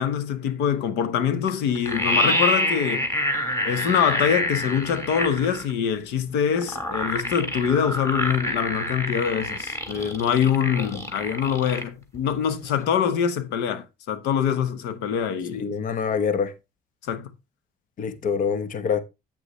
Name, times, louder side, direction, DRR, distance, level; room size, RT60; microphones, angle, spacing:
voice 1, 0.0-3.1 3.6-15.7 17.0-17.3, left 8 dB, 85° left, 1.1 m, -24 dB
sound 1, 1.5-1.6 1.7-5.7 6.6-11.8 12.1-12.2, left 1 dB, 15° left, 2.9 m, -26 dB
voice 2, 15.6-16.5 18.0-19.0, left 6 dB, 55° left, 1.0 m, -25 dB
8.8 x 8.3 x 3.2 m
cardioid pair, 110°, 17 cm